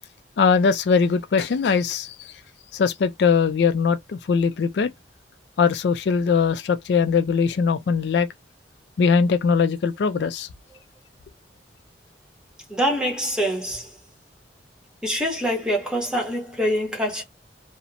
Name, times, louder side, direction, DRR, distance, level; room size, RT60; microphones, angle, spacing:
voice 1, 0.4-2.3 2.7-4.9 5.6-8.3 9.0-10.5, left 5 dB, 70° left, 0.4 m, -21 dB
voice 2, 12.7-13.9 15.0-17.2, equal, 5° right, 0.9 m, -25 dB
2.8 x 2.0 x 2.5 m
head